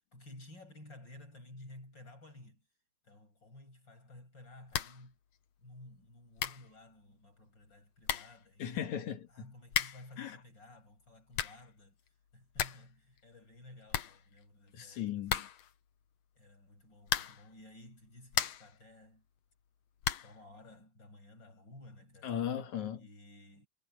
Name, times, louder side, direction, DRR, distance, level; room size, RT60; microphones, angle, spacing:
voice 1, 0.1-2.7 3.0-5.2 5.6-8.8 9.3-12.0 12.3-15.5 16.3-19.3 20.2-22.4 23.0-23.7, left 1 dB, 25° left, 8.5 m, -54 dB
sound 1, 4.7-5.1 5.3-5.4 6.1-6.2 6.4-6.7 7.7-7.8 8.0-8.4 9.7-10.1 11.1-11.7 12.1-12.2 12.4-12.9 13.2-13.3 13.5-13.6 13.9-14.7 15.3-15.8 17.0-17.5 18.0-18.8 20.0-20.4, left 10 dB, 80° left, 1.5 m, -35 dB
voice 2, 8.6-9.5 10.2-10.4 14.7-15.5 22.2-23.0, left 9 dB, 55° left, 2.5 m, -37 dB
omnidirectional pair, 5.0 m